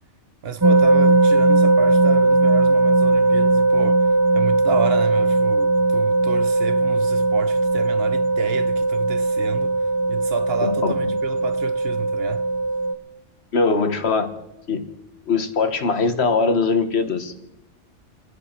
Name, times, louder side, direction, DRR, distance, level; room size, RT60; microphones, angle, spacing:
voice 1, 0.4-4.1 4.3-9.8 10.1-12.5, right 6 dB, 60° right, 1.0 m, -30 dB
sound 1, 0.6-13.0, right 2 dB, 25° right, 0.4 m, -18 dB
voice 2, 10.6-10.9 13.5-14.3 14.7-14.8 15.3-17.3, left 4 dB, 60° left, 1.5 m, -21 dB
30.0 x 10.5 x 4.4 m
omnidirectional pair, 1.2 m